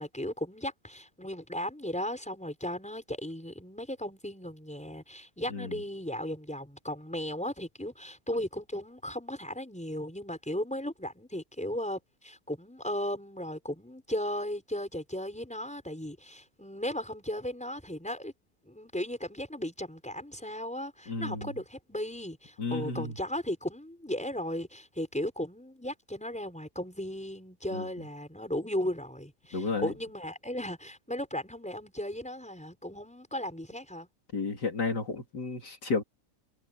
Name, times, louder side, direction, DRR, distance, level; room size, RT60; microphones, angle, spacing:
voice 1, 0.0-18.3 18.6-34.1, left 1 dB, 5° left, 5.8 m, -36 dB
voice 2, 21.1-21.5 22.6-23.1 27.7-27.9 29.5-29.9 34.3-36.0, left 4 dB, 70° left, 3.6 m, -32 dB
omnidirectional pair, 1.9 m